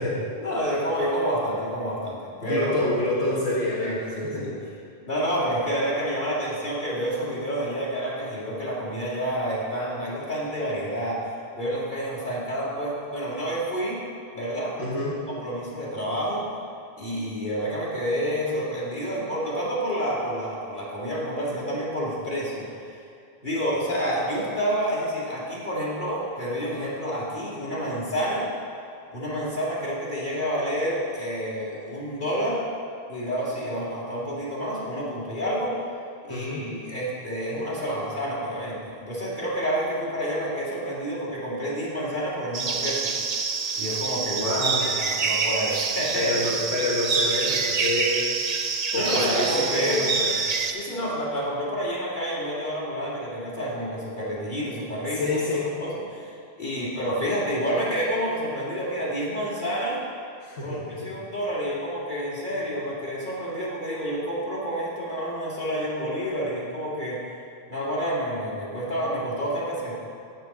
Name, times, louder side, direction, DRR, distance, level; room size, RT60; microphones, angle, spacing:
voice 1, 0.4-2.9 3.8-4.5 5.0-14.0 14.3-14.7 15.3-16.4 17.0-23.0 23.4-28.5 29.1-32.6 33.1-35.8 36.2-43.1 43.7-44.6 44.9-46.3 48.9-50.1 50.7-55.4 55.8-60.0 60.6-67.4 67.7-70.0, equal, 50° left, -7 dB, 2.5 m, -29 dB
voice 2, 2.4-4.6 14.8-15.2 36.3-36.7 44.2-44.9 46.1-48.3 48.9-50.3 55.1-55.7 60.4-61.1, left 2 dB, 85° left, -7 dB, 1.7 m, -28 dB
sound 1, 42.5-50.7, right 5 dB, 50° right, 0.6 m, -26 dB
7.6 x 7.6 x 6.0 m, 2.5 s
omnidirectional pair, 1.1 m